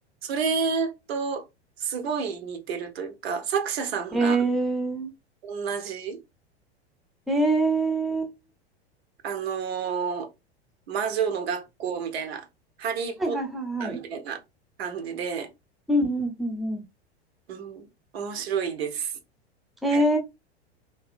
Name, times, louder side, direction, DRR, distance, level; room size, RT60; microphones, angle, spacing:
voice 1, 0.2-1.4 1.8-4.5 5.4-6.2 9.2-10.3 10.9-12.5 12.8-13.4 13.8-14.4 14.8-15.5 17.5-17.9 18.1-19.1 19.9-20.0, right 6 dB, 65° right, 0.8 m, -30 dB
voice 2, 4.1-5.1 7.3-8.3 13.2-14.0 15.9-16.8 19.8-20.2, right 2 dB, ahead, 0.5 m, -24 dB
2.6 x 2.4 x 2.4 m
hypercardioid pair, 90°, 33 cm